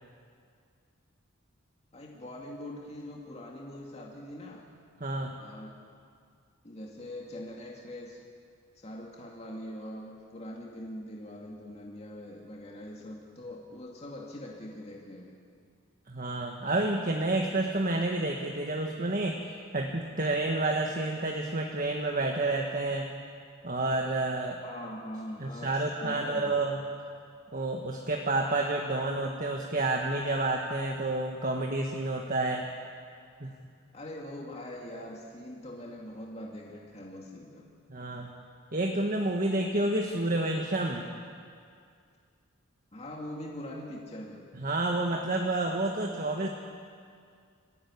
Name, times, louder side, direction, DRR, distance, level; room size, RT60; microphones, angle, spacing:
voice 1, 1.9-4.7 5.4-5.8 6.6-8.2 8.8-15.4 24.6-26.6 33.9-37.6 42.9-44.4, left 1 dB, 30° left, -2 dB, 2.5 m, -42 dB
voice 2, 5.0-5.3 16.1-23.1 23.6-24.6 25.4-26.8 27.5-32.7 33.4-33.6 37.9-38.3 38.7-41.1 44.5-46.5, right 2 dB, 40° right, 1 dB, 1.6 m, -29 dB
25.0 x 15.5 x 9.9 m, 2.2 s
head